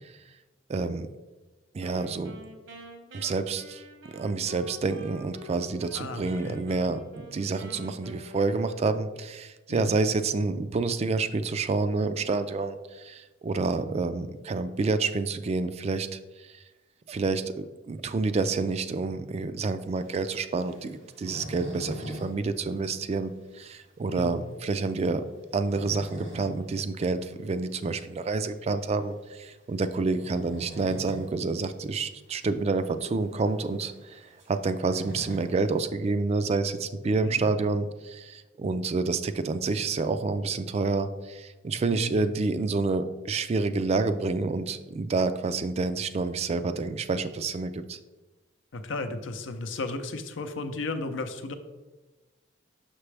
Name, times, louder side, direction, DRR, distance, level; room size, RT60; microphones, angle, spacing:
voice 1, 0.7-1.1 1.7-2.4 3.1-3.8 4.1-16.6 17.1-25.2 25.5-48.0, right 3 dB, 35° right, 10 dB, 0.3 m, -28 dB
Wind instrument woodwind instrument, 1.8-6.0 6.2-9.2, equal, 70° right, 1.2 m, -47 dB
voice 2, 5.9-6.6 9.7-9.9 24.1-24.4 37.2-37.5 41.9-42.2 48.7-51.5, left 3 dB, 90° left, 8 dB, 0.6 m, -34 dB
sound 1, 20.0-22.3 22.6-22.7 23.1-23.2 23.7-23.8 25.4-26.5 26.9-27.1 28.6-28.8 30.0-31.3 31.7-31.8 32.0-32.1 32.8-32.9 33.2-35.8, equal, 90° right, 2.1 m, -41 dB
5.9 x 5.9 x 3.3 m, 1.2 s
head